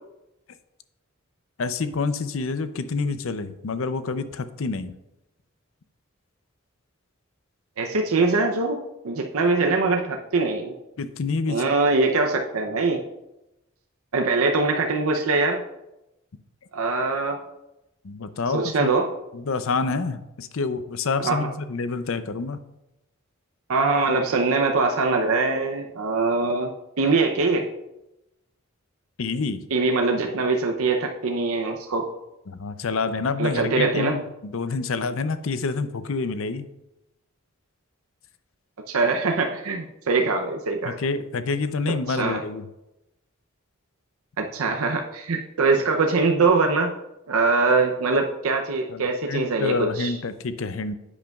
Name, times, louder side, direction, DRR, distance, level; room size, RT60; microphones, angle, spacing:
voice 1, 1.6-4.9 11.0-11.6 18.0-18.9 19.3-22.6 29.2-29.6 32.5-36.7 40.8-42.7 48.9-51.0, left 4 dB, 70° left, 12 dB, 0.6 m, -28 dB
voice 2, 7.8-10.7 11.5-13.0 14.1-15.6 16.7-17.4 18.5-19.1 21.2-21.5 23.7-26.7 27.0-27.7 29.7-32.1 33.4-34.2 38.9-40.9 42.1-42.4 44.4-46.9 47.3-50.1, right 3 dB, 85° right, 3 dB, 0.7 m, -23 dB
10.5 x 8.4 x 2.4 m, 0.93 s
head